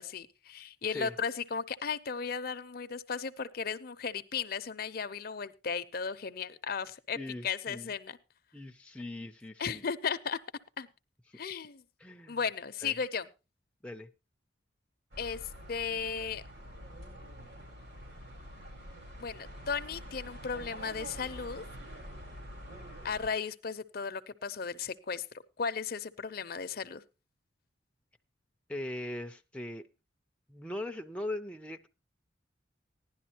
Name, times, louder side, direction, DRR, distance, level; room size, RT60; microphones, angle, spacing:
voice 1, 0.0-8.2 9.6-10.4 10.8-10.9 11.3-11.8 12.3-13.3 15.2-15.4 15.7-16.4 19.2-21.6 23.0-25.2 25.6-27.0, left 6 dB, 50° left, 0.6 m, -35 dB
voice 2, 7.1-7.9 8.5-9.8 12.0-12.4 12.8-12.9 13.8-14.1 28.7-29.9 30.5-31.9, left 1 dB, 5° left, 0.5 m, -40 dB
sound 1, 15.1-23.3, equal, 70° right, 4.8 m, -46 dB
16.0 x 11.0 x 2.8 m
head